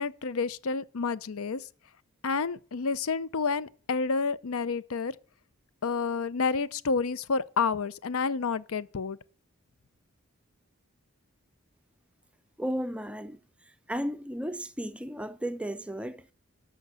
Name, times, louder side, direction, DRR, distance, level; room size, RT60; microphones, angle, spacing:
voice 1, 0.0-1.6 2.2-5.1 5.8-9.2, left 4 dB, 75° left, 0.6 m, -29 dB
voice 2, 12.6-13.4 13.9-16.3, equal, 5° right, 0.4 m, -34 dB
13.0 x 5.2 x 8.2 m
head